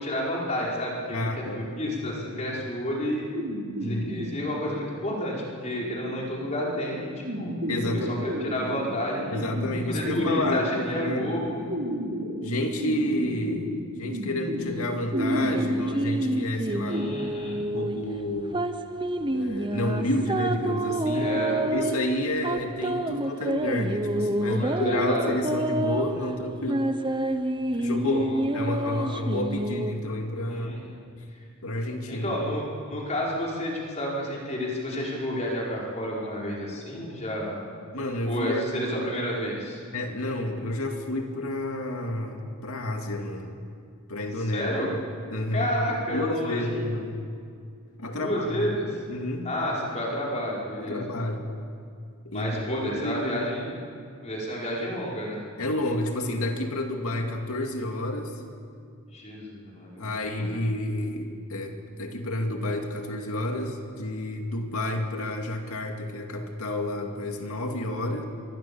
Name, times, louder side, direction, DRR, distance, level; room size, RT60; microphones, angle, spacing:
voice 1, 0.0-3.2 3.8-7.5 7.9-9.5 9.9-11.7 16.9-17.6 21.1-21.6 24.4-25.3 28.0-28.4 30.5-30.9 32.1-37.6 38.3-39.8 44.3-45.0 45.5-46.8 48.2-49.0 49.4-51.2 52.3-53.8 54.2-55.4 59.1-60.5, equal, 30° left, -4 dB, 5.4 m, -31 dB
voice 2, 1.1-1.7 2.1-2.5 3.7-4.1 7.7-8.2 9.3-11.3 12.4-17.1 17.6-18.6 19.3-26.9 27.8-28.3 28.5-30.7 31.6-32.4 37.9-38.6 39.9-43.6 44.1-44.8 45.3-47.2 48.0-48.7 49.1-49.5 50.8-51.5 52.2-53.5 55.6-58.4 60.0-68.2, left 1 dB, 75° left, 3 dB, 2.4 m, -30 dB
sound 1, 3.3-17.1, equal, 60° right, 3.8 m, -34 dB
sound 2, 15.1-29.9, right 1 dB, 20° right, 0.8 m, -28 dB
25.5 x 22.0 x 7.2 m, 2.3 s
head